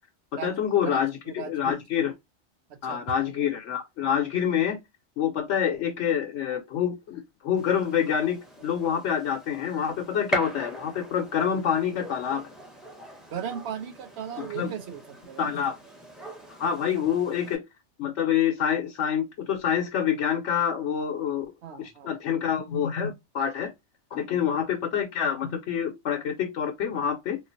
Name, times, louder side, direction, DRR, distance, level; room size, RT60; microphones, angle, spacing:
voice 1, 0.3-2.1 2.8-4.8 5.2-12.5 14.4-14.7 15.4-15.8 16.5-17.6 18.0-21.5 21.7-23.7 24.1-27.4, left 8 dB, 75° left, 1.0 m, -27 dB
voice 2, 0.8-1.8 2.7-3.0 13.3-15.5 21.6-22.2 24.3-24.5, right 8 dB, 65° right, 0.9 m, -37 dB
Gunshot gunfire, 7.6-17.5, right 1 dB, ahead, 0.7 m, -40 dB
3.7 x 2.4 x 2.6 m
omnidirectional pair, 1.2 m